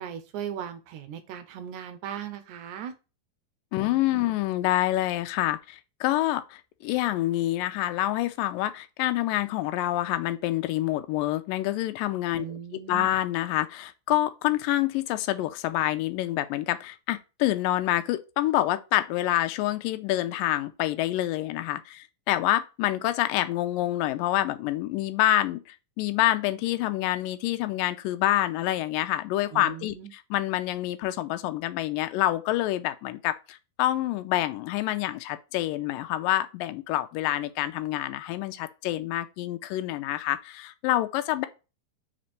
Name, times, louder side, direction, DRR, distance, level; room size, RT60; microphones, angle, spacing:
voice 1, 0.0-2.9 3.8-4.3 12.4-13.1 29.5-30.1, right 9 dB, 80° right, 1.8 m, -38 dB
voice 2, 3.7-41.5, left 15 dB, 80° left, 2.2 m, -27 dB
5.1 x 4.3 x 5.0 m
omnidirectional pair, 4.1 m